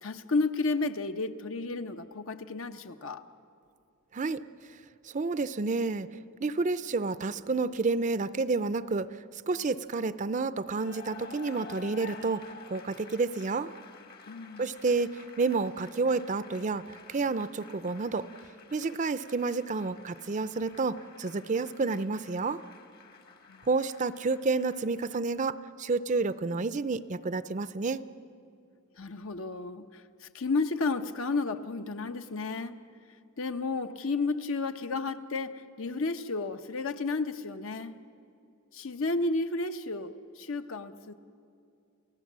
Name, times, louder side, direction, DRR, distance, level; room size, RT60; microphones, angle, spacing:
voice 1, 0.0-3.2 14.3-14.7 23.5-23.7 29.0-32.7 33.4-38.0 38.7-41.1, left 3 dB, 70° left, 8 dB, 0.9 m, -32 dB
voice 2, 5.0-6.1 6.4-13.7 14.6-18.3 18.7-22.6 23.7-28.0, right 3 dB, 35° right, 14 dB, 0.5 m, -30 dB
Cheering / Applause, 10.6-25.6, left 5 dB, 45° left, 1.3 m, -51 dB
29.5 x 16.0 x 7.4 m, 2.5 s
head